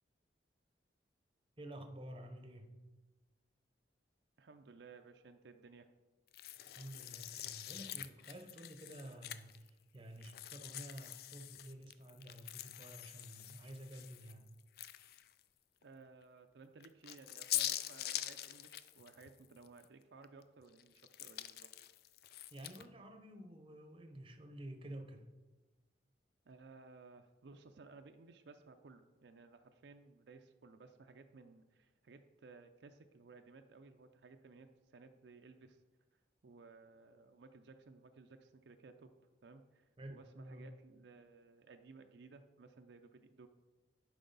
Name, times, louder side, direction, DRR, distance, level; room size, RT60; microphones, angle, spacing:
voice 1, 1.6-2.7 6.8-14.4 22.5-25.3 40.0-40.7, right 1 dB, 30° right, 5 dB, 0.7 m, -51 dB
voice 2, 4.4-5.9 15.8-21.7 26.5-35.8 36.4-39.1 39.4-43.5, right 4 dB, 70° right, 7 dB, 0.5 m, -58 dB
sound 1, 6.3-9.7 10.2-15.4 15.8-15.9 16.8-19.9 20.2-22.9, left 13 dB, 55° left, 0.3 m, -44 dB
10.0 x 4.8 x 4.0 m, 1.2 s
head